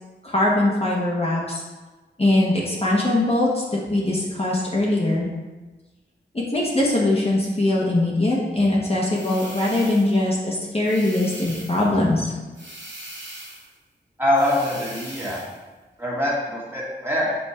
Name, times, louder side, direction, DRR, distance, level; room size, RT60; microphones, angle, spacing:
voice 1, 0.2-1.6 2.2-3.6 3.9-5.3 6.3-12.3, left 1 dB, 30° left, -5 dB, 1.1 m, -21 dB
sound 1, 9.1-10.2 10.8-11.9 12.6-13.7 14.3-15.6, right 1 dB, 80° right, 1.7 m, -40 dB
voice 2, 14.2-15.4 16.0-17.3, left 1 dB, 10° right, -6 dB, 1.8 m, -23 dB
5.6 x 4.4 x 4.3 m, 1.2 s
wide cardioid pair, 80°, 19 cm